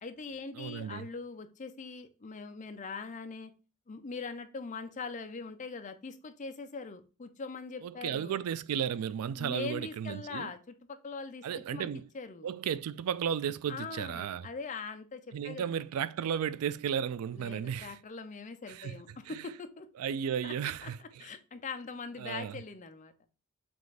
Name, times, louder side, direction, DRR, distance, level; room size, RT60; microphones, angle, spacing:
voice 1, 0.0-3.5 3.9-8.4 9.4-11.9 12.1-12.5 13.7-15.8 17.3-19.9 20.4-23.1, left 4 dB, 35° left, 0.5 m, -42 dB
voice 2, 0.6-1.1 7.8-10.5 11.4-12.1 12.4-14.5 15.3-18.0 18.7-19.4 20.0-21.3 22.2-22.6, right 8 dB, 90° right, 0.3 m, -34 dB
6.0 x 2.5 x 3.3 m
head